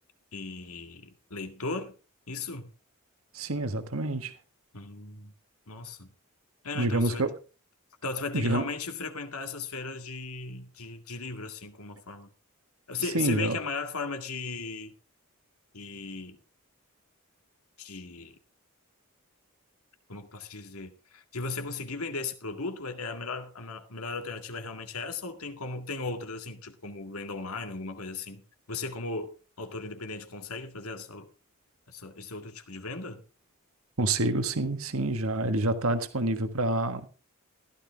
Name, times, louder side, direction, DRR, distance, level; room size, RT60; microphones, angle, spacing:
voice 1, 0.3-1.9 2.3-2.7 4.7-5.3 5.7-6.1 6.6-7.2 8.0-12.3 12.9-14.9 15.7-16.4 17.8-18.4 20.1-29.3 29.6-31.3 31.9-33.2, left 3 dB, 90° left, 2.0 m, -37 dB
voice 2, 3.3-4.3 6.7-7.3 8.3-8.6 13.1-13.6 34.0-37.1, right 2 dB, 70° right, 1.5 m, -27 dB
14.5 x 13.0 x 3.5 m
head